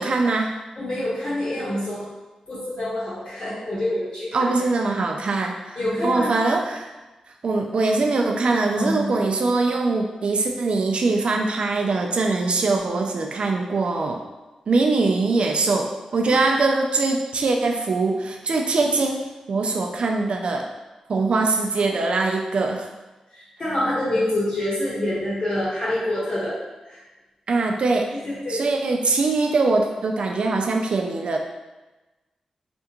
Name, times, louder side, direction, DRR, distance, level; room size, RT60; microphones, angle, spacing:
voice 1, 0.0-0.6 4.3-5.8 6.0-6.9 7.4-14.2 14.7-20.7 21.1-22.9 27.5-28.1 28.5-31.4, right 3 dB, 60° right, 3 dB, 0.4 m, -22 dB
voice 2, 0.8-2.1 2.5-4.6 5.8-6.3 8.8-9.2 16.3-16.4 23.3-26.5 26.8-27.0 28.1-28.6, left 1 dB, 55° left, -10 dB, 1.2 m, -26 dB
3.4 x 2.4 x 2.9 m, 1.1 s
wide cardioid pair, 90°, 2 cm